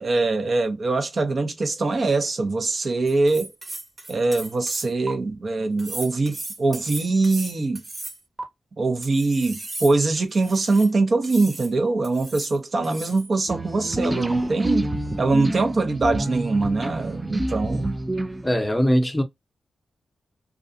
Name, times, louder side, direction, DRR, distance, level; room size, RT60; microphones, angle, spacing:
voice 1, 0.0-3.5 4.1-7.8 8.8-14.9 15.2-18.0, right 3 dB, 50° right, 0.8 m, -23 dB
sound 1, 3.1-5.1 5.8-8.4 9.0-10.9 11.2-11.7 12.0-12.5 12.8-13.3, right 2 dB, 35° right, 1.2 m, -36 dB
sound 2, 13.5-18.7, right 1 dB, 20° right, 0.4 m, -28 dB
voice 2, 18.4-19.2, equal, 10° left, 0.8 m, -20 dB
2.4 x 2.3 x 2.6 m
cardioid pair, 60°, 0 cm